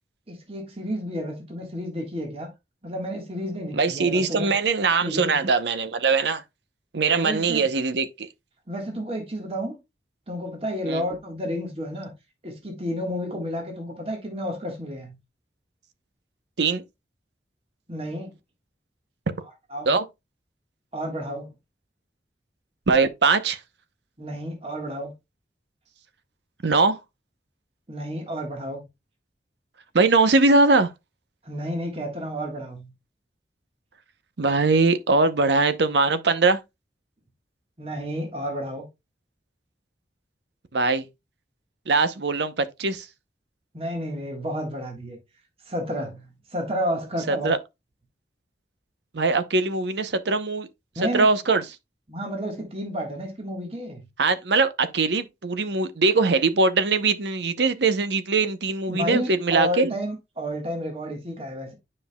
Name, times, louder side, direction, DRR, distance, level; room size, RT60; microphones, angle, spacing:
voice 1, 0.3-2.5 2.8-4.5 5.0-5.4 7.1-7.7 8.7-9.8 10.3-12.1 12.4-15.1 17.9-18.3 19.7-19.9 20.9-21.5 24.2-25.1 27.9-28.8 31.4-32.9 37.8-38.9 43.7-45.2 45.7-47.5 50.9-51.3 52.1-54.1 58.9-61.7, equal, 35° right, 1.5 m, -31 dB
voice 2, 3.7-6.4 6.9-8.3 10.9-11.0 16.6-16.8 19.9-20.0 22.9-23.6 26.6-27.0 29.9-30.9 34.4-36.6 40.7-41.1 41.9-43.1 47.3-47.6 49.1-50.7 51.1-51.6 54.2-59.9, right 3 dB, 85° right, 0.7 m, -21 dB
9.5 x 5.4 x 2.2 m
head